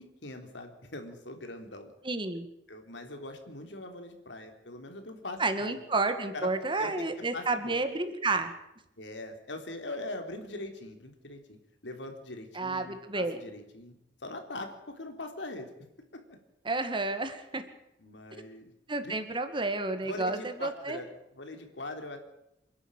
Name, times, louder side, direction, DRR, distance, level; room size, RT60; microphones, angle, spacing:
voice 1, 0.2-1.9 2.7-5.8 6.3-6.5 6.8-7.8 9.0-13.9 14.2-15.7 16.1-16.2 18.0-18.7 19.0-19.1 20.0-22.2, left 2 dB, 85° left, 5 dB, 3.5 m, -42 dB
voice 2, 2.1-2.5 5.4-8.5 12.6-13.4 16.7-17.6 18.9-21.0, right 3 dB, 30° right, 8 dB, 2.0 m, -31 dB
27.5 x 11.5 x 9.0 m, 0.85 s
head